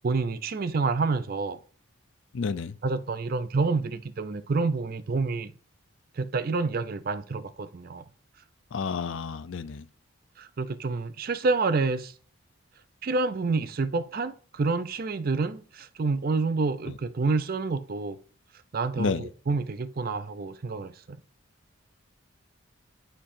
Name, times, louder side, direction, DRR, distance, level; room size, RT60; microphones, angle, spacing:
voice 1, 0.0-1.6 2.8-5.5 6.1-8.0 10.4-12.1 13.0-18.2 18.7-21.2, right 3 dB, 45° right, 0.4 m, -28 dB
voice 2, 2.3-2.8 8.7-9.9 16.9-17.0 19.0-19.2, left 5 dB, 60° left, 0.4 m, -30 dB
9.8 x 4.5 x 2.6 m
head